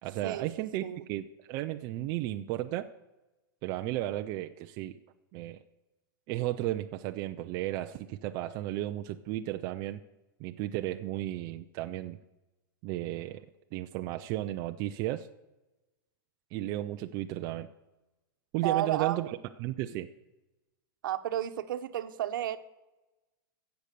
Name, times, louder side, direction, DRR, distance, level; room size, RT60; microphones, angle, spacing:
voice 1, 0.0-2.9 3.6-5.0 5.3-5.6 6.3-10.0 10.4-12.2 12.8-13.5 13.7-15.3 16.5-17.7 18.5-19.3 19.6-20.1, right 15 dB, 30° right, 6 dB, 0.5 m, -34 dB
voice 2, 18.6-19.3 21.0-22.6, right 12 dB, 60° right, 10 dB, 1.1 m, -32 dB
15.0 x 8.0 x 6.8 m, 1.0 s
supercardioid pair, 160°, 12 cm